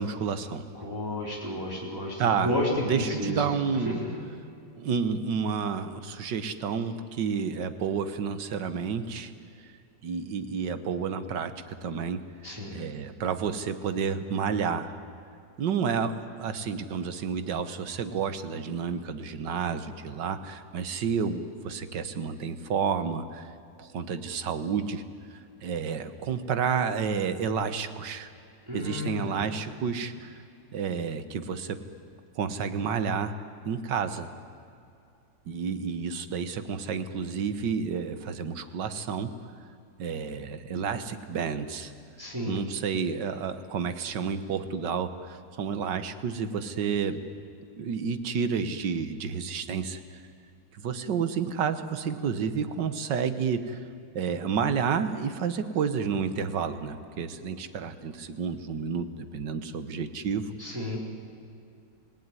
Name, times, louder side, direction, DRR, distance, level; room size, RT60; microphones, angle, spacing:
voice 1, 0.0-0.6 2.2-2.5 2.9-3.9 4.8-9.3 10.0-12.2 12.7-14.9 15.6-23.5 23.8-25.0 25.6-28.3 28.7-30.3 30.7-31.8 32.4-33.3 33.7-34.3 35.5-39.3 40.0-41.9 42.5-47.2 47.8-50.0 50.7-53.8 54.2-60.5, right 6 dB, 70° right, 11 dB, 1.8 m, -30 dB
voice 2, 0.7-3.4 3.7-4.1 12.4-12.8 28.7-29.5 42.2-42.6 60.6-61.0, left 1 dB, 10° right, -3 dB, 3.8 m, -32 dB
27.0 x 17.5 x 9.7 m, 2.6 s
omnidirectional pair, 2.0 m